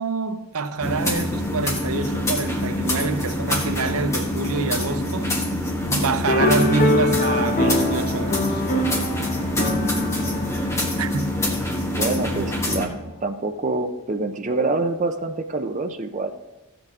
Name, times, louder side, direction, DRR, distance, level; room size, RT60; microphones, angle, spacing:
voice 1, 0.0-5.3 5.9-8.7 11.0-11.3, right 4 dB, 75° right, 0.7 m, -26 dB
sound 1, 0.8-12.9, left 1 dB, 15° left, 1.2 m, -25 dB
sound 2, 6.3-11.8, left 1 dB, 35° left, 0.8 m, -24 dB
voice 2, 11.9-16.3, right 3 dB, 35° right, 0.5 m, -26 dB
14.5 x 7.9 x 3.6 m
head